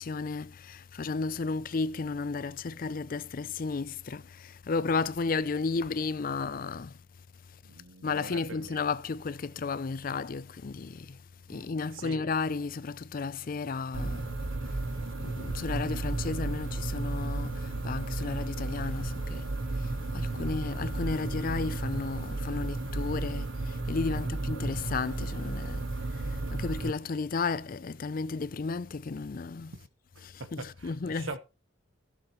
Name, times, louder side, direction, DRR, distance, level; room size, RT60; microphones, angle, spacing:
voice 1, 0.0-6.9 8.0-11.2 11.5-14.3 15.2-19.5 20.1-25.8 26.5-29.7 30.5-31.4, left 4 dB, 45° left, 0.5 m, -33 dB
voice 2, 7.6-8.8 11.5-12.3 20.4-20.7 24.1-24.4 26.4-27.1 29.7-29.9 30.4-31.4, right 3 dB, 90° right, 1.2 m, -44 dB
sound 1, 13.9-26.9, right 2 dB, 75° right, 1.2 m, -33 dB
16.0 x 7.2 x 3.1 m
head